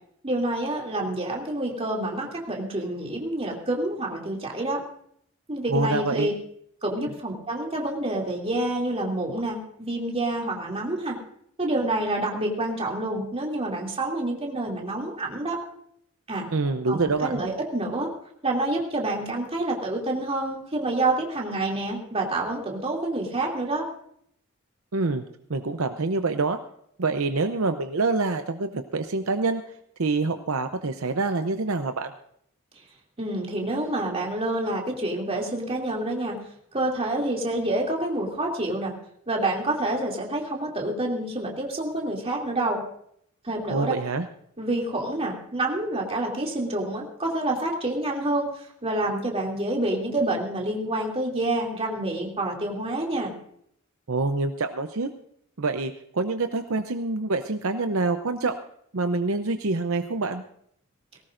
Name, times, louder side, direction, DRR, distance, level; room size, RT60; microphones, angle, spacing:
voice 1, 0.2-4.8 5.5-6.3 6.8-11.2 11.6-15.6 16.3-16.5 16.9-18.1 18.4-23.8 33.2-36.4 36.7-38.9 39.3-42.8 43.4-43.9 44.6-53.3, right 1 dB, 30° right, -1 dB, 2.7 m, -28 dB
voice 2, 5.7-6.3 16.5-17.4 24.9-25.2 25.5-26.6 27.0-29.6 30.0-32.1 43.7-44.2 54.1-55.1 55.6-58.6 58.9-60.4, right 3 dB, 65° right, 8 dB, 0.7 m, -26 dB
19.5 x 17.5 x 2.6 m, 0.69 s
head